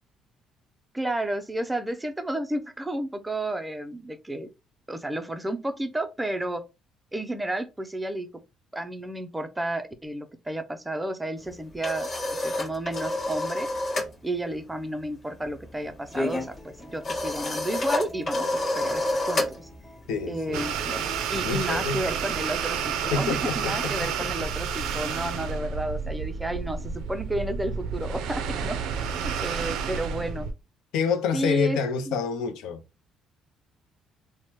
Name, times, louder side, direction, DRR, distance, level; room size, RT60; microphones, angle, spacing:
voice 1, 0.9-4.5 4.9-6.6 7.1-8.3 8.7-12.1 12.4-13.7 14.2-19.7 20.3-20.7 21.3-28.8 29.2-30.5 31.3-31.8 32.1-32.2, right 1 dB, 10° right, 0.4 m, -32 dB
sound 1, 11.4-14.1 14.4-14.7 15.0-21.6, left 1 dB, 45° left, 1.2 m, -30 dB
Acoustic guitar, 16.1-24.1, equal, 10° left, 1.2 m, -49 dB
voice 2, 20.1-20.6 21.4-22.0 23.1-24.3 30.9-32.8, left 5 dB, 85° left, 0.4 m, -28 dB
sound 2, 20.5-30.5, right 7 dB, 90° right, 0.4 m, -30 dB
3.1 x 2.0 x 2.9 m
cardioid pair, 120°, 0 cm